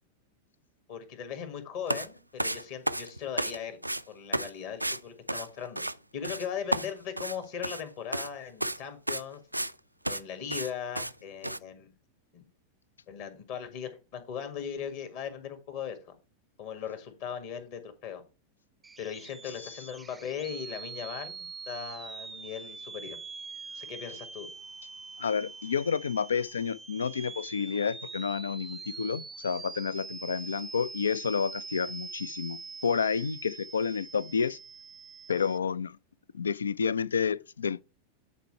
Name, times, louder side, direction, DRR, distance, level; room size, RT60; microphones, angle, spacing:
voice 1, 0.9-3.8 4.1-5.8 6.1-9.4 10.1-11.9 12.3-12.4 13.1-16.2 16.6-18.2 19.0-23.2 23.7-24.5, left 8 dB, 50° left, 1.7 m, -39 dB
sound 1, 1.9-2.1 2.4-3.6 3.8-4.0 4.3-4.5 4.8-5.0 5.3-5.9 6.2-6.5 6.7-7.8 8.1-8.3 8.6-8.8 9.1-9.7 10.0-10.2 10.5-10.7 10.9-11.1 11.4-11.6, right 1 dB, 85° right, 0.3 m, -32 dB
sound 2, 18.8-35.6, right 4 dB, 15° right, 0.5 m, -44 dB
voice 2, 25.2-34.6 35.3-36.0 36.3-37.8, left 6 dB, 70° left, 0.3 m, -30 dB
9.2 x 4.4 x 4.5 m
figure-of-eight pair, 90°, 0 cm